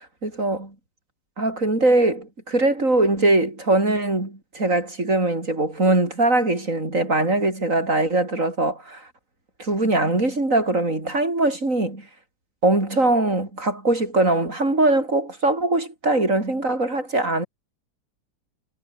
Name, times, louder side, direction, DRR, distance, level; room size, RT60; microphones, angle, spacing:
voice 1, 0.2-0.7 1.4-9.1 9.6-12.1 12.6-17.5, right 2 dB, 40° right, 5.8 m, -21 dB
omnidirectional pair, 2.0 m